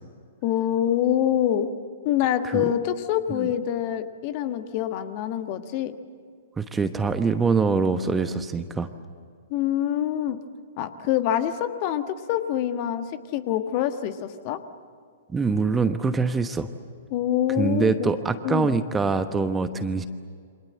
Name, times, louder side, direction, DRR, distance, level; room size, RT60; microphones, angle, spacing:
voice 1, 0.4-1.7 2.0-5.9 9.5-10.4 10.8-14.6 17.1-18.1 18.4-18.7, left 11 dB, 40° left, 9 dB, 1.6 m, -25 dB
voice 2, 6.6-8.9 15.3-16.7 17.6-20.0, right 4 dB, 10° right, 10 dB, 1.1 m, -24 dB
28.5 x 25.5 x 7.7 m, 2.1 s
figure-of-eight pair, 110°, 0 cm